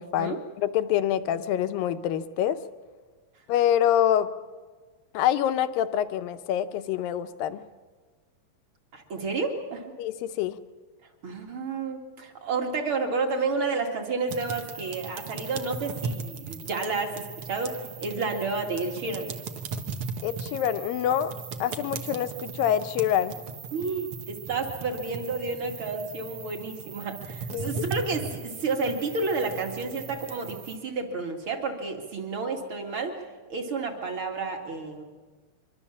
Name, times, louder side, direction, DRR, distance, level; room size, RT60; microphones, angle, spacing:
voice 1, 0.0-2.6 3.5-4.3 5.1-7.6 10.0-10.6 20.2-21.3 21.6-23.4 27.5-27.8, left 10 dB, 80° left, 11 dB, 2.5 m, -26 dB
voice 2, 8.9-9.9 11.2-19.3 23.7-33.2 33.5-35.0, right 4 dB, 40° right, 3 dB, 2.6 m, -31 dB
sound 1, 14.3-30.8, right 5 dB, 65° right, 1.3 m, -38 dB
25.0 x 23.0 x 7.3 m, 1.4 s
omnidirectional pair, 4.2 m